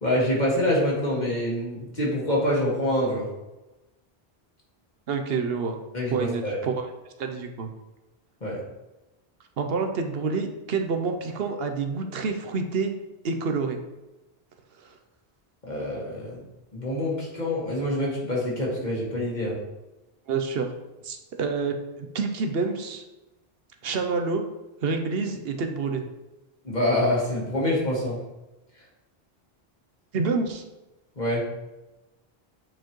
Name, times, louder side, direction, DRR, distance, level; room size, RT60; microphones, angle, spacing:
voice 1, 0.0-3.3 5.9-6.6 8.4-8.6 15.7-16.4 16.7-19.6 26.6-28.2 31.2-31.4, left 1 dB, 45° left, -5 dB, 1.9 m, -26 dB
voice 2, 5.1-5.8 6.1-6.9 7.2-7.7 9.6-12.9 13.2-13.8 14.8-14.9 20.3-20.7 21.0-23.0 23.8-24.4 24.8-26.1 30.1-30.6, right 4 dB, 75° right, 5 dB, 0.9 m, -28 dB
8.1 x 4.4 x 3.1 m, 1.0 s
omnidirectional pair, 1.0 m